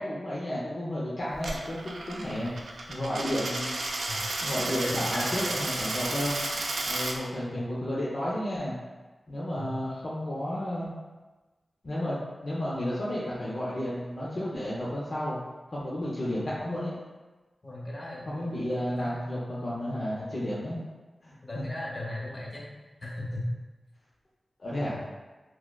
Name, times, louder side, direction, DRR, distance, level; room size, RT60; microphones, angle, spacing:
voice 1, 0.0-2.5 2.9-3.7 4.4-8.7 9.3-11.0 11.8-15.4 15.7-16.9 18.3-20.8 21.2-21.7 24.6-25.0, left 1 dB, 60° left, -8 dB, 0.6 m, -32 dB
Coin (dropping), 1.3-7.2, right 2 dB, 80° right, 0.4 m, -32 dB
voice 2, 4.8-5.6 7.5-7.6 9.5-9.7 17.6-19.2 21.4-22.7 23.0-23.4, left 1 dB, 45° left, -5 dB, 1.0 m, -37 dB
4.5 x 2.1 x 2.3 m, 1.2 s
cardioid pair, 45°, 0 cm